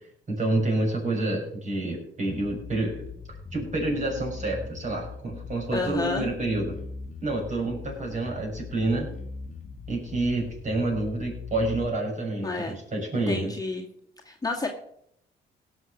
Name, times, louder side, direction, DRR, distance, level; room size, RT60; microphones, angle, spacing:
voice 1, 0.3-3.0 3.5-6.8 7.2-9.1 9.9-13.5, right 2 dB, 35° right, 0 dB, 6.5 m, -28 dB
Bass guitar, 2.3-11.9, left 4 dB, 35° left, 1.5 m, -40 dB
voice 2, 5.7-6.3 12.4-12.7 13.3-13.8 14.3-14.7, left 3 dB, 20° left, 0 dB, 2.0 m, -30 dB
17.0 x 6.7 x 6.5 m, 0.70 s
cardioid pair, 90°, 20 cm